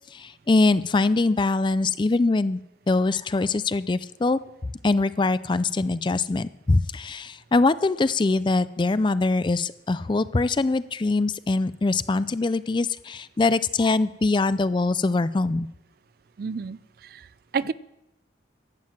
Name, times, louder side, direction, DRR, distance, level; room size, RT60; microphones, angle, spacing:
voice 1, 0.1-2.6 2.9-4.4 4.8-15.7, left 3 dB, 25° left, 15 dB, 0.4 m, -23 dB
voice 2, 16.4-17.3 17.5-17.7, right 5 dB, 50° right, 18 dB, 0.4 m, -30 dB
11.5 x 7.7 x 7.5 m, 0.87 s
head